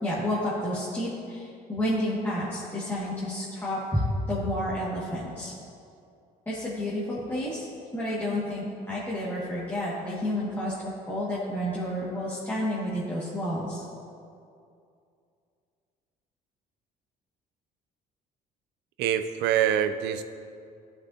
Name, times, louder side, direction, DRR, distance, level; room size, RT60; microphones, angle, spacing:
voice 1, 0.0-5.5 6.5-7.7 7.9-13.8, left 1 dB, 15° left, -9 dB, 1.9 m, -30 dB
voice 2, 19.0-20.2, right 10 dB, 85° right, 10 dB, 0.5 m, -25 dB
13.0 x 5.9 x 2.8 m, 2.5 s
cardioid pair, 110°, 17 cm